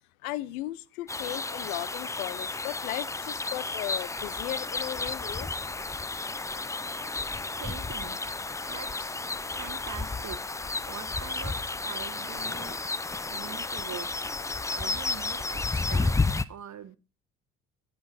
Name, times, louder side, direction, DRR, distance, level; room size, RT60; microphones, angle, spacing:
voice 1, 0.2-5.5, left 16 dB, 75° left, 0.6 m, -36 dB
sound 1, 1.1-16.4, left 3 dB, 10° left, 0.4 m, -32 dB
voice 2, 6.5-9.1 9.5-10.4 10.9-12.8 13.3-14.3 14.7-16.1 16.5-17.0, right 9 dB, 40° right, 1.2 m, -44 dB
9.6 x 8.7 x 3.9 m
hypercardioid pair, 50°, 43 cm